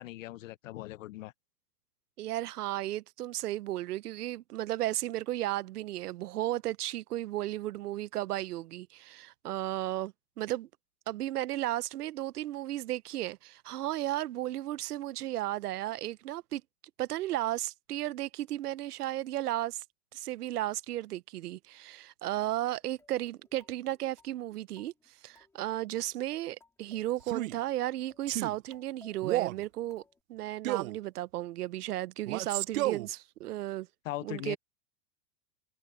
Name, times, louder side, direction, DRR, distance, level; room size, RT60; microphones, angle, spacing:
voice 1, 0.0-1.3 34.0-34.6, left 15 dB, 60° left, 0.9 m, -39 dB
voice 2, 2.2-10.7 11.1-16.6 17.0-19.8 20.1-24.9 25.2-30.0 30.3-33.9 34.2-34.6, right 14 dB, 85° right, 1.0 m, -34 dB
sound 1, 22.8-30.2, left 3 dB, 5° left, 2.9 m, -63 dB
Male speech man speaking, 27.2-27.6 28.3-28.6 29.2-29.6 30.6-31.0 32.3-33.1, right 16 dB, 60° right, 0.7 m, -31 dB
open air
supercardioid pair, 170°, 45 cm